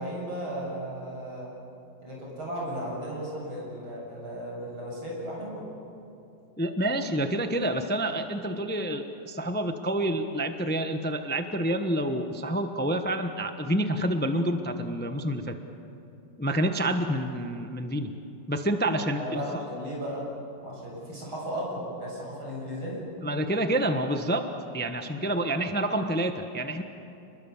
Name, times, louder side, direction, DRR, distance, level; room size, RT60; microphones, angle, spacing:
voice 1, 0.0-1.5 2.0-5.6 19.2-20.3 20.6-23.1, equal, 90° right, -3 dB, 8.7 m, -35 dB
voice 2, 6.6-15.5 16.4-18.1 18.5-19.4 23.2-24.5 24.7-26.8, right 1 dB, 10° left, 6 dB, 0.7 m, -28 dB
29.5 x 21.5 x 7.2 m, 2.7 s
omnidirectional pair, 2.2 m